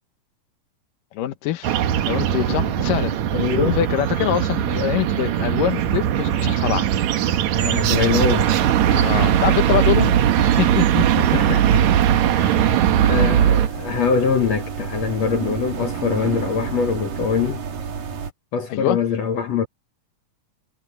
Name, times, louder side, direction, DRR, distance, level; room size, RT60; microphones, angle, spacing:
voice 1, 1.1-3.2 3.7-6.9 8.9-11.2 13.1-13.4 18.7-19.0, left 12 dB, 90° left, 2.8 m, -25 dB
sound 1, 1.6-13.7, right 10 dB, 70° right, 2.2 m, -19 dB
voice 2, 3.3-3.8 7.5-8.6 11.3-11.8 12.3-12.8 13.0-17.6 18.5-19.7, left 6 dB, 60° left, 2.4 m, -23 dB
sound 2, 7.9-18.3, right 7 dB, 85° right, 4.4 m, -29 dB
omnidirectional pair, 3.7 m